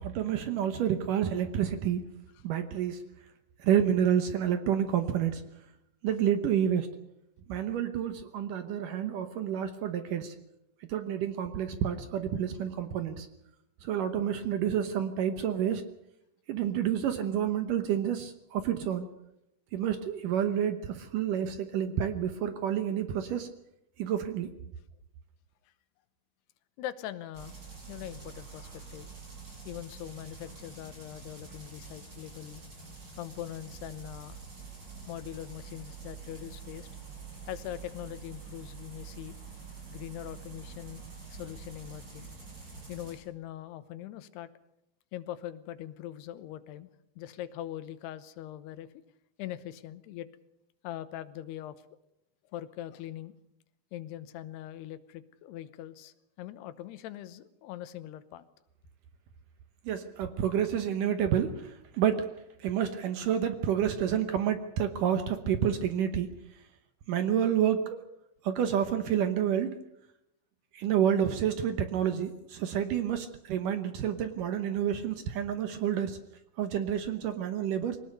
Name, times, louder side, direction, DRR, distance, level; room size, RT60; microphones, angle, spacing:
voice 1, 0.0-2.0 2.4-3.0 3.6-5.4 6.0-6.9 7.5-10.3 10.9-13.3 13.8-15.8 16.5-19.1 19.7-23.5 24.0-24.5 59.9-62.3 62.6-66.3 67.1-68.0 68.4-69.8 70.7-76.2 76.6-78.0, right 9 dB, 70° right, 9 dB, 2.3 m, -29 dB
voice 2, 26.8-27.6 27.9-29.1 29.7-32.6 33.2-34.4 35.1-36.9 37.5-39.4 39.9-41.0 41.3-42.3 42.9-44.5 45.1-48.9 49.4-50.3 50.8-51.8 52.5-53.4 53.9-58.4, left 12 dB, 85° left, 13 dB, 3.0 m, -42 dB
sound 1, 27.3-43.2, right 5 dB, 25° right, 6.6 m, -46 dB
22.5 x 19.0 x 6.7 m, 0.84 s
omnidirectional pair, 4.6 m